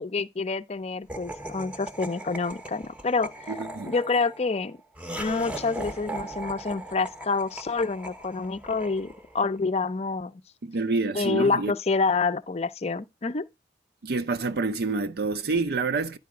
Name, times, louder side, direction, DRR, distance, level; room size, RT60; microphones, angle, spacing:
voice 1, 0.0-3.6 3.9-4.8 5.2-10.4 11.1-13.4, left 4 dB, 35° left, 0.5 m, -27 dB
Laughter, 1.1-9.5, right 1 dB, 5° right, 0.7 m, -39 dB
voice 2, 3.5-3.9 10.6-11.7 14.0-16.2, right 3 dB, 60° right, 0.5 m, -27 dB
10.5 x 4.1 x 4.8 m
head